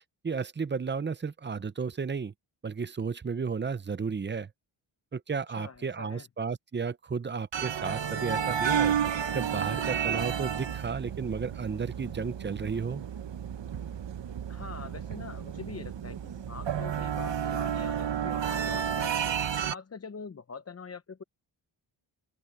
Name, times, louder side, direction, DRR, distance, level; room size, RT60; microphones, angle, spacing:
voice 1, 0.2-2.3 2.6-4.5 5.1-9.0 9.3-13.0, right 5 dB, 25° right, 0.7 m, -33 dB
voice 2, 5.6-6.3 14.5-19.3 19.7-21.2, left 5 dB, 30° left, 0.8 m, -44 dB
sound 1, 7.5-19.7, right 8 dB, 60° right, 1.1 m, -31 dB
open air
wide cardioid pair, 115°, 49 cm